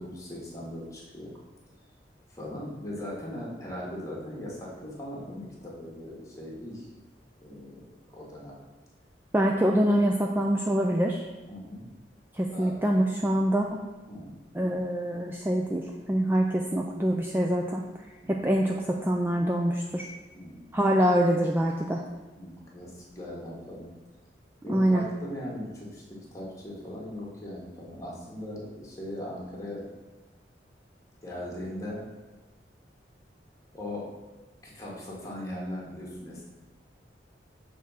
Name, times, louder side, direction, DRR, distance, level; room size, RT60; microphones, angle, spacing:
voice 1, 0.0-1.3 2.3-6.9 7.4-8.5 11.5-11.9 12.5-12.8 14.1-14.4 18.2-18.5 20.3-20.8 22.4-23.9 24.6-29.9 31.2-32.0 33.7-34.1 34.6-36.5, left 1 dB, 20° left, -4 dB, 1.5 m, -39 dB
voice 2, 9.3-11.3 12.3-13.8 14.5-17.8 18.3-20.1 20.7-22.0 24.7-25.1, equal, 10° right, 0 dB, 0.3 m, -25 dB
6.6 x 3.6 x 5.6 m, 1.2 s
head